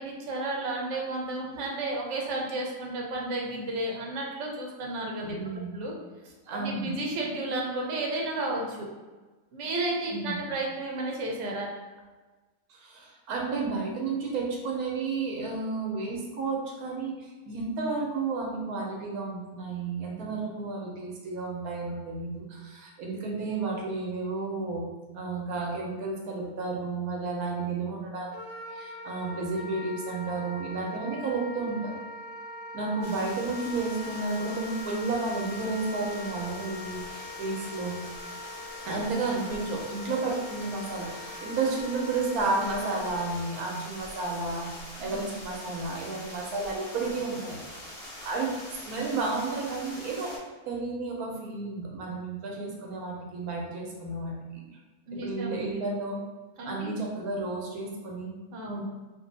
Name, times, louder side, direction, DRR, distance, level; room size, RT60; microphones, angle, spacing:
voice 1, 0.0-5.4 5.7-5.9 6.5-8.9 9.5-11.7 45.0-45.2 55.1-55.7 56.6-56.9 58.5-58.8, right 2 dB, 60° right, -1 dB, 1.0 m, -32 dB
voice 2, 5.2-5.7 6.5-7.0 10.1-10.4 12.7-24.9 25.1-31.9 32.7-38.0 38.9-44.7 45.0-47.9 48.2-48.5 48.9-50.4 50.6-54.7 55.1-56.2 56.6-58.4 58.7-58.8, right 3 dB, 90° right, -1 dB, 1.2 m, -32 dB
Wind instrument woodwind instrument, 28.3-43.4, left 2 dB, 65° left, 0.9 m, -42 dB
sound 1, 33.0-50.4, left 1 dB, 45° left, 1.2 m, -44 dB
2.7 x 2.6 x 3.8 m, 1.2 s
omnidirectional pair, 1.5 m